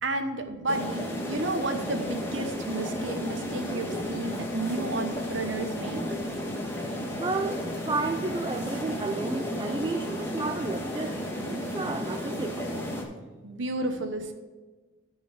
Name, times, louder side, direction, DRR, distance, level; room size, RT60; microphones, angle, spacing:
voice 1, 0.0-6.0 13.4-14.3, right 2 dB, 75° right, 7 dB, 1.0 m, -32 dB
sound 1, 0.7-13.0, equal, 10° left, 1.4 m, -33 dB
voice 2, 7.2-11.2 11.5-12.7, right 3 dB, 20° right, 5 dB, 0.4 m, -32 dB
13.5 x 4.7 x 5.0 m, 1.3 s
head